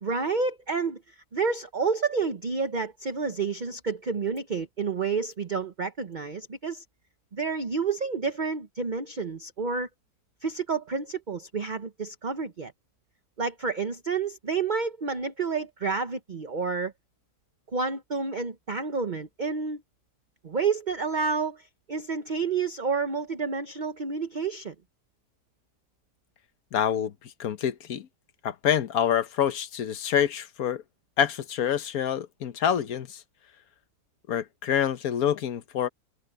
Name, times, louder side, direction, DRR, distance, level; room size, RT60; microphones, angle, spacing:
voice 1, 0.0-6.8 7.3-9.9 10.4-12.7 13.4-16.9 17.7-19.8 20.4-24.7, right 5 dB, 35° right, 1.0 m, -29 dB
voice 2, 26.7-27.1 27.4-28.1 28.4-30.8 31.2-33.2 34.3-35.9, left 9 dB, 65° left, 1.4 m, -26 dB
omnidirectional pair, 1.8 m